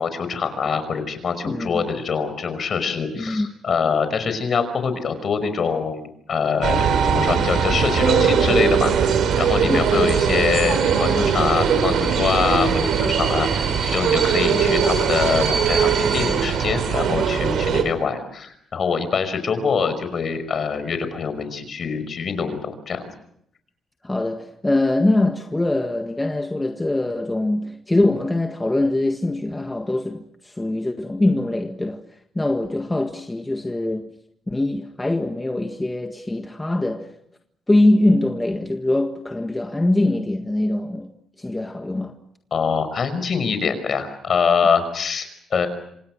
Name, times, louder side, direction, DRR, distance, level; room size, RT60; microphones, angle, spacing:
voice 1, 0.0-23.1 42.5-45.7, left 5 dB, 50° left, 5.4 m, -24 dB
voice 2, 1.4-1.9 3.1-3.5 9.6-9.9 24.0-32.0 32.3-34.1 34.5-37.1 37.7-41.1 41.4-42.1, left 2 dB, 15° left, 1.7 m, -22 dB
sound 1, 6.6-17.8, right 6 dB, 70° right, 4.3 m, -20 dB
26.5 x 26.5 x 6.3 m
cardioid pair, 90°, 0 cm